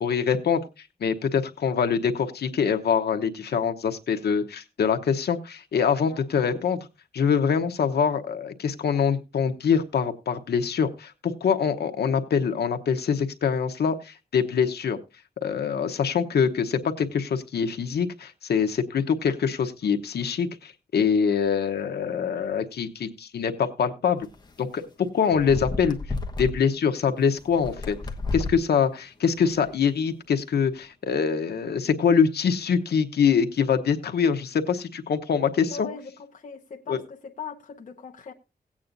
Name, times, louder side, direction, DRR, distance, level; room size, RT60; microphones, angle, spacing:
voice 1, 0.0-6.8 7.1-15.0 15.4-24.3 24.6-26.0 26.4-28.0 28.3-35.9 36.9-37.0, left 6 dB, 80° left, 1.0 m, -24 dB
sound 1, 24.3-24.5 25.3-26.5 27.4-28.6 29.3-29.7, left 3 dB, 25° left, 1.1 m, -32 dB
voice 2, 35.7-38.3, left 6 dB, 50° left, 0.9 m, -40 dB
17.5 x 8.6 x 2.6 m
wide cardioid pair, 130°, 17 cm